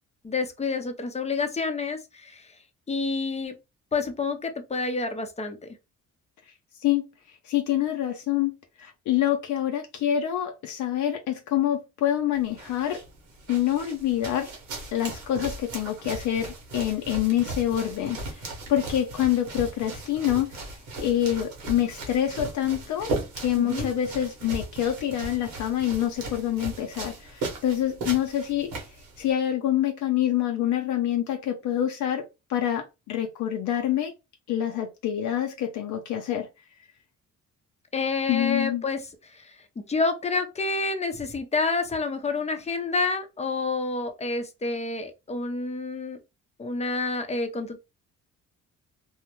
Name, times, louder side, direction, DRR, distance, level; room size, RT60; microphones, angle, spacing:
voice 1, 0.2-2.5 2.9-3.6 3.9-5.7 23.5-23.9 37.9-46.2 46.6-47.8, left 3 dB, 20° left, 0.6 m, -29 dB
voice 2, 7.4-8.5 8.8-13.0 13.5-14.5 14.9-23.1 23.4-28.7 29.2-32.2 32.5-34.1 34.5-36.5 38.3-38.8, left 11 dB, 75° left, 0.6 m, -26 dB
sound 1, 12.3-29.3, right 2 dB, 90° right, 1.2 m, -37 dB
2.7 x 2.0 x 3.0 m
cardioid pair, 90°, 30 cm